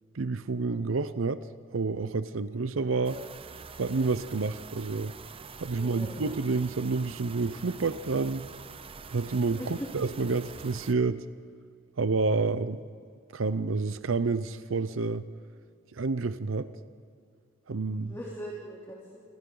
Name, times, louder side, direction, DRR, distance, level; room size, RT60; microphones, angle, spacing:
voice 1, 0.1-1.5 1.7-3.2 3.8-5.1 5.6-8.5 9.1-11.3 12.0-12.9 13.3-15.2 15.9-16.7 17.7-18.1, right 3 dB, 80° right, 13 dB, 0.7 m, -29 dB
sound 1, 3.0-10.9, right 5 dB, 30° right, 0.7 m, -46 dB
voice 2, 5.7-6.3 9.5-10.0 17.8-19.2, equal, 15° left, -5 dB, 3.2 m, -41 dB
28.5 x 26.0 x 3.9 m, 2.3 s
head